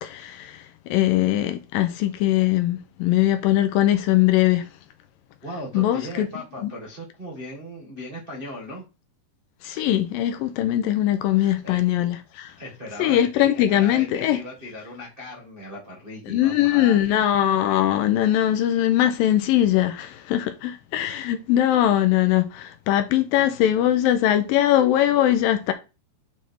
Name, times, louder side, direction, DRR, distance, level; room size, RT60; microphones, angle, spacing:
voice 1, 0.0-4.7 5.7-6.3 6.6-6.7 9.6-12.5 13.0-14.4 16.3-25.7, left 12 dB, 80° left, 2.3 m, -21 dB
voice 2, 5.4-8.8 11.4-11.8 12.6-17.1, left 1 dB, 40° right, 0.7 m, -37 dB
9.3 x 3.4 x 4.5 m
omnidirectional pair, 4.4 m